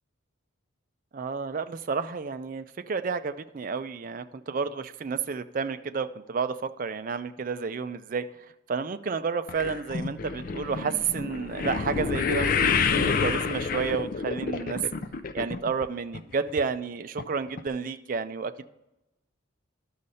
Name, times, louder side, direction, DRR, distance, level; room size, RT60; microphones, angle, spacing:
voice 1, 1.1-8.3 8.7-14.8 15.3-18.7, right 5 dB, 40° right, 11 dB, 0.4 m, -31 dB
sound 1, 9.5-15.9 16.1-16.6 17.2-17.3 17.6-17.7, left 5 dB, 45° left, 0.4 m, -28 dB
11.0 x 6.4 x 4.1 m, 0.95 s
head